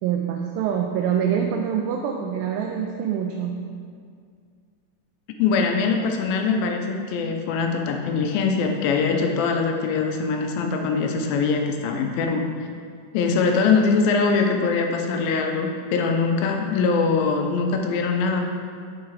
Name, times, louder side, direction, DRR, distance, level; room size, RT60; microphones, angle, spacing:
voice 1, 0.0-3.6, right 8 dB, 80° right, 2 dB, 2.1 m, -25 dB
voice 2, 5.4-12.5 13.1-18.4, left 4 dB, 80° left, 4 dB, 2.3 m, -22 dB
7.5 x 4.8 x 4.7 m, 2.1 s
omnidirectional pair, 4.4 m